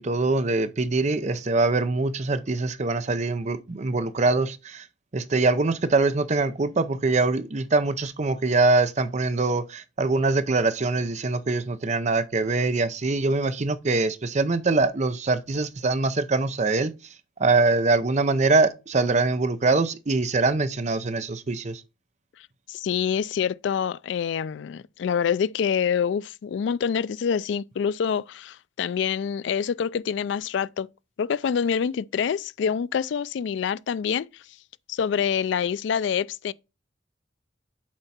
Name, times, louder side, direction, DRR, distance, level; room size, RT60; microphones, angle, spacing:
voice 1, 0.0-4.9 5.1-16.9 17.4-21.8, right 3 dB, 40° right, 0.6 m, -23 dB
voice 2, 22.7-30.9 31.2-34.3 34.9-36.5, left 7 dB, 65° left, 0.3 m, -26 dB
7.4 x 4.5 x 4.2 m
head